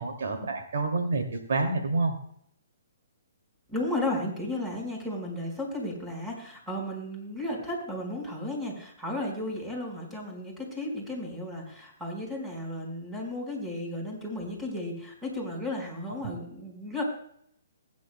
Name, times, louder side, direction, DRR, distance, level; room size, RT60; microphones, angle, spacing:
voice 1, 0.0-2.2, right 3 dB, 70° right, 3 dB, 2.4 m, -28 dB
voice 2, 3.7-17.0, left 1 dB, 10° right, 0 dB, 4.6 m, -34 dB
20.5 x 10.0 x 2.2 m, 0.66 s
hypercardioid pair, 135°, 0 cm